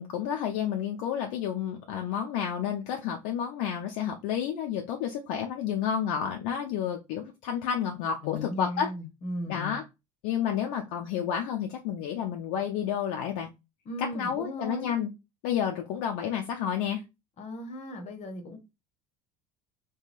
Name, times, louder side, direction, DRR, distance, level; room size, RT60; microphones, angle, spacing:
voice 1, 0.0-8.9 9.5-9.8 10.2-13.5 14.2-15.1 15.4-17.0, left 8 dB, 55° left, 0.5 m, -30 dB
voice 2, 8.2-9.8 13.8-14.9 17.4-18.6, left 1 dB, 40° left, 0.9 m, -37 dB
2.9 x 2.2 x 2.5 m
figure-of-eight pair, 70°, 18 cm